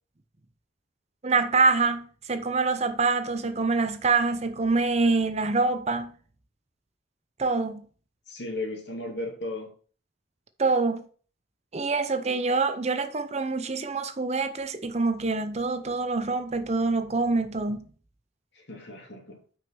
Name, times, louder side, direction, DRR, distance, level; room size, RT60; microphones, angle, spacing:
voice 1, 1.2-6.1 7.4-7.8 10.6-11.0 11.7-17.8, right 3 dB, 35° right, 0.7 m, -25 dB
voice 2, 8.3-9.7 18.6-19.4, left 2 dB, 65° left, 2.4 m, -35 dB
6.2 x 5.4 x 6.0 m
head